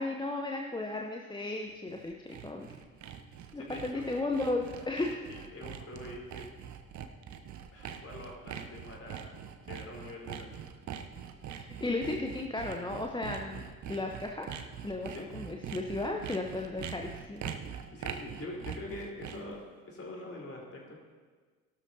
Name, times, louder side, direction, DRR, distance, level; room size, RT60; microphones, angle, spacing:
voice 1, 0.0-2.7 3.5-5.4 11.5-14.5 14.8-17.5, left 2 dB, 10° left, 1 dB, 0.9 m, -35 dB
Sawing, 1.7-19.6, right 8 dB, 40° right, 0.9 m, -43 dB
voice 2, 3.5-6.5 7.7-10.5 15.1-15.3 17.9-21.0, left 1 dB, 30° left, -2 dB, 4.0 m, -45 dB
17.0 x 12.5 x 2.8 m, 1.4 s
figure-of-eight pair, 50°, 43 cm